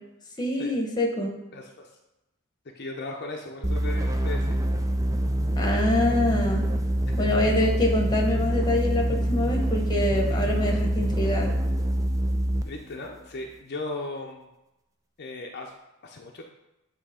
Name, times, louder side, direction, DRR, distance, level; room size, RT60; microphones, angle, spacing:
voice 1, 0.4-1.3 5.6-6.6 7.2-11.6, left 1 dB, 20° left, 2 dB, 1.0 m, -25 dB
voice 2, 1.5-1.9 2.7-4.6 7.2-7.3 12.7-14.5 15.2-15.7 16.0-16.4, left 2 dB, 50° left, 0 dB, 0.6 m, -36 dB
sound 1, 3.6-12.8, equal, 15° right, 0.4 m, -25 dB
8.4 x 2.9 x 4.9 m, 0.95 s
head